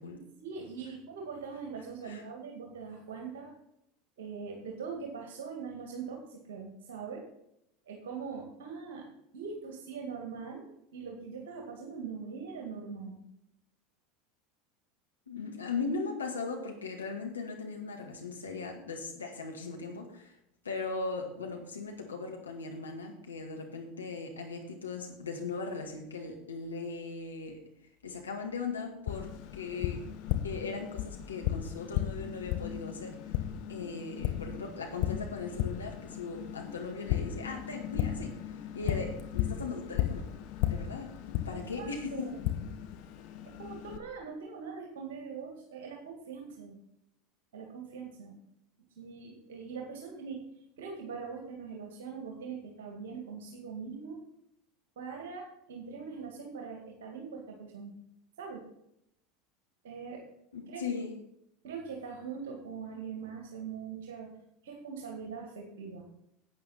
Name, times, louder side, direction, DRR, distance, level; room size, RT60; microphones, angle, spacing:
voice 1, 0.4-3.5 4.2-7.3 7.9-9.1 9.3-13.2 41.5-42.4 43.4-46.8 47.5-48.4 49.0-50.4 50.8-54.2 55.0-57.9 58.4-58.6 59.8-60.3 60.7-60.8 61.6-64.3 64.6-66.1, right 5 dB, 65° right, 1 dB, 2.0 m, -42 dB
voice 2, 15.3-20.4 20.6-27.6 28.0-30.0 30.4-33.2 33.7-38.4 38.7-40.3 40.7-41.1 41.5-42.4 60.5-61.2, left 4 dB, 80° left, 2 dB, 1.9 m, -38 dB
Tap, 29.1-44.0, left 12 dB, 55° left, 1.1 m, -35 dB
11.5 x 8.7 x 4.3 m, 0.77 s
figure-of-eight pair, 75°, 0 cm